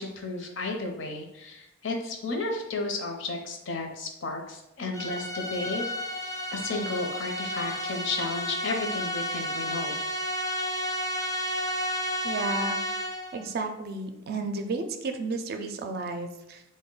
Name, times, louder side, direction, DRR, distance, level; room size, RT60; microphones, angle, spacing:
voice 1, 0.0-5.8 6.5-10.0, left 2 dB, 70° left, 3 dB, 0.7 m, -33 dB
sound 1, 4.9-13.4, equal, 15° left, 0.4 m, -32 dB
voice 2, 12.2-12.8 13.3-16.6, right 3 dB, 55° right, 6 dB, 0.4 m, -32 dB
4.1 x 2.1 x 3.7 m, 0.88 s
head